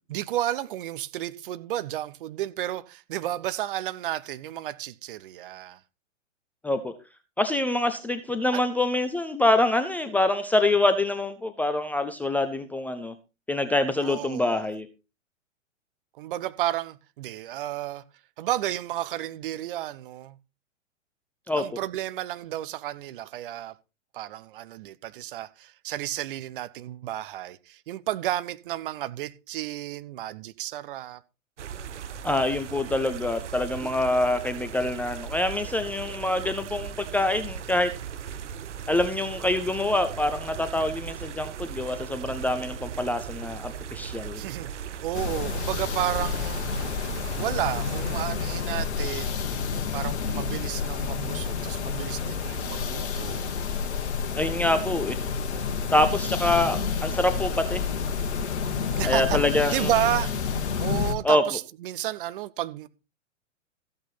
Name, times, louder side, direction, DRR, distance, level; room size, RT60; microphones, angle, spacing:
voice 1, 0.1-5.8 8.5-8.6 14.0-14.7 16.2-18.0 18.4-20.3 21.6-23.8 24.1-31.2 44.3-44.7 45.0-46.9 47.4-49.4 49.9-53.5 56.5-56.6 59.0-59.4 59.7-60.4 60.8-62.9, right 13 dB, 45° right, 0.9 m, -32 dB
voice 2, 7.4-13.1 13.5-14.9 21.5-21.6 32.2-37.9 38.9-44.4 54.4-55.2 55.9-57.8 59.0-59.9 61.2-61.4, left 2 dB, 5° left, 0.5 m, -25 dB
sound 1, 31.6-48.3, right 8 dB, 65° right, 1.1 m, -38 dB
sound 2, 45.1-61.1, left 6 dB, 60° left, 1.7 m, -29 dB
14.0 x 8.6 x 4.1 m
figure-of-eight pair, 110°, 38 cm